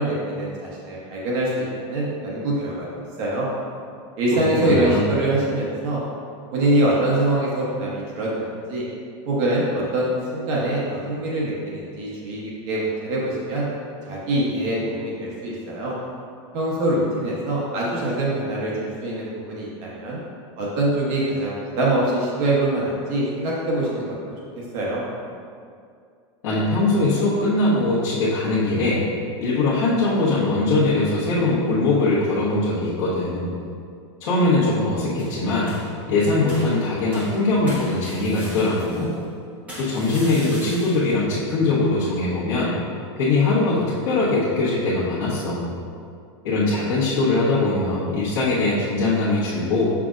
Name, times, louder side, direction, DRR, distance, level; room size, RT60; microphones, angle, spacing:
voice 1, 0.0-2.9 3.2-3.5 4.2-6.0 6.5-8.8 9.3-13.7 14.0-15.9 16.5-20.2 20.6-24.1 24.6-25.0, right 1 dB, 35° right, -5 dB, 1.0 m, -24 dB
voice 2, 4.3-5.0 26.4-29.0 29.4-33.5 34.2-35.8 36.1-39.1 39.8-42.8 43.1-45.7 46.4-49.9, left 2 dB, 50° left, -11 dB, 1.3 m, -21 dB
sound 1, 35.2-36.0 36.5-39.2 39.7-41.1, equal, 10° right, 1.1 m, -39 dB
6.8 x 5.8 x 2.5 m, 2.3 s
supercardioid pair, 180°, 15 cm